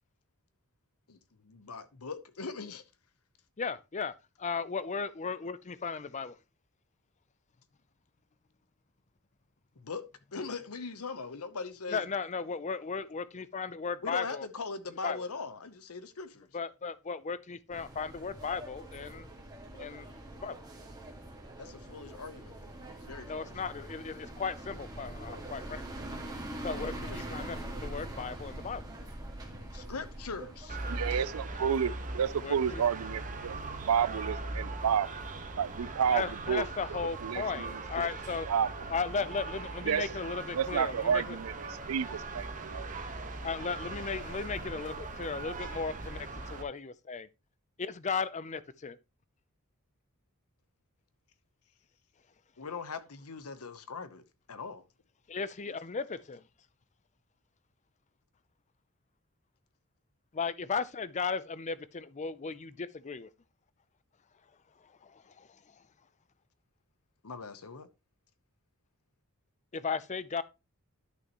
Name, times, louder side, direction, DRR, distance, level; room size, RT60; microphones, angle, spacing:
voice 1, 1.4-2.8 9.8-10.0 10.3-12.0 14.0-16.5 21.6-22.5 23.0-23.5 26.7-27.2 29.7-30.8 31.1-31.2 52.6-54.2 54.5-54.8 67.2-67.9, left 4 dB, 75° left, 0.9 m, -40 dB
voice 2, 3.6-4.1 4.4-6.4 11.9-14.5 15.0-15.2 16.5-19.3 19.7-20.1 20.4-20.6 23.3-25.8 26.6-28.9 32.4-32.8 36.1-38.5 38.9-41.4 43.4-47.3 47.8-49.0 55.3-56.4 60.3-63.3 64.8-65.8 69.7-70.4, left 5 dB, 30° left, 0.5 m, -36 dB
sound 1, 17.7-31.2, right 1 dB, 15° right, 1.9 m, -43 dB
sound 2, 30.7-46.6, right 2 dB, 35° right, 1.3 m, -40 dB
voice 3, 30.9-35.1 35.6-36.7 37.2-37.7 38.0-38.1 38.5-38.7 39.9-40.1 40.5-42.9, right 7 dB, 75° right, 0.4 m, -30 dB
11.0 x 6.3 x 3.0 m
head